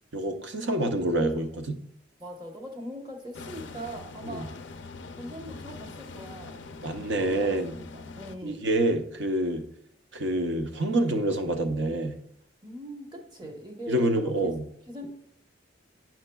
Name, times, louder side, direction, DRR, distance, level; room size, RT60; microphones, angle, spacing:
voice 1, 0.1-1.8 4.2-4.4 6.8-7.7 8.4-9.6 10.1-12.1 13.9-14.6, right 1 dB, 80° right, 5 dB, 0.7 m, -27 dB
voice 2, 2.2-4.5 5.2-6.6 7.2-8.6 12.6-14.5 14.9-15.1, right 1 dB, 25° right, 1 dB, 0.9 m, -41 dB
sound 1, 3.3-8.4, left 3 dB, 80° left, 0.4 m, -43 dB
9.0 x 5.9 x 2.2 m, 0.71 s
head